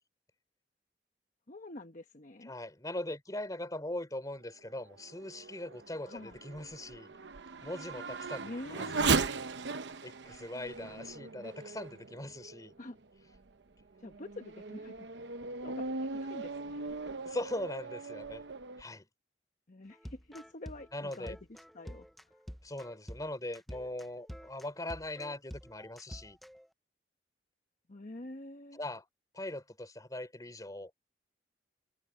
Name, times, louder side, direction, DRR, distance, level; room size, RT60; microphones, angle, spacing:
voice 1, 1.5-2.5 6.1-6.4 8.4-9.4 12.8-13.0 14.0-15.1 15.6-17.0 19.7-22.4 27.9-28.8, left 2 dB, 45° left, 1.1 m, -47 dB
voice 2, 2.4-7.1 7.6-8.8 9.1-9.3 10.0-12.7 17.2-18.4 18.8-19.1 20.9-21.3 22.6-26.4 28.7-29.0 29.3-30.9, left 1 dB, 20° left, 3.4 m, -40 dB
Race car auto racing / Accelerating revving vroom, 4.8-12.7 13.3-13.4 14.0-18.8, right 4 dB, 80° right, 0.9 m, -37 dB
sound 1, 19.9-26.7, equal, ahead, 0.7 m, -48 dB
head